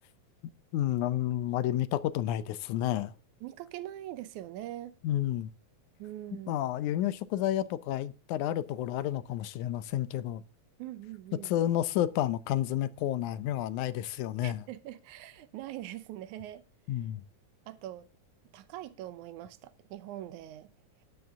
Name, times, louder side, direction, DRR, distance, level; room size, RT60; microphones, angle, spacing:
voice 1, 0.7-3.1 5.0-5.5 6.5-10.4 11.4-14.6 16.9-17.2, left 12 dB, 85° left, 2.2 m, -30 dB
voice 2, 3.4-4.9 6.0-6.5 10.8-11.5 14.4-16.6 17.7-18.1 18.5-20.7, right 13 dB, 85° right, 2.3 m, -42 dB
12.0 x 9.7 x 3.6 m
omnidirectional pair, 3.4 m